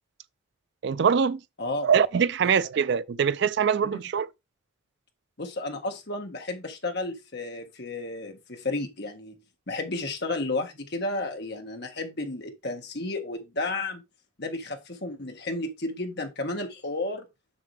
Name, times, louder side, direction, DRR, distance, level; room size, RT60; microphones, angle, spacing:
voice 1, 0.8-1.4 1.8-4.3, right 7 dB, 55° right, 0.4 m, -23 dB
voice 2, 1.6-1.9 2.4-2.5 3.9-4.0 5.4-9.4 9.7-14.0 14.4-17.2, left 2 dB, 50° left, 1.4 m, -32 dB
6.8 x 6.6 x 3.3 m
head